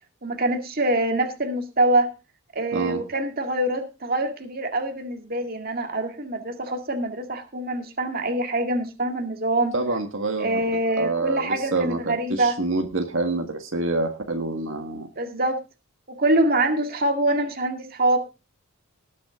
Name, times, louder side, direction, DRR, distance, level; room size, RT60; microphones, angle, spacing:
voice 1, 0.2-2.1 2.6-9.7 10.4-12.6 15.2-15.6 16.2-18.2, right 1 dB, 40° right, 5 dB, 2.0 m, -24 dB
voice 2, 2.7-3.0 9.7-15.1, right 2 dB, 60° right, 4 dB, 1.7 m, -27 dB
19.0 x 7.7 x 3.7 m, 0.30 s
head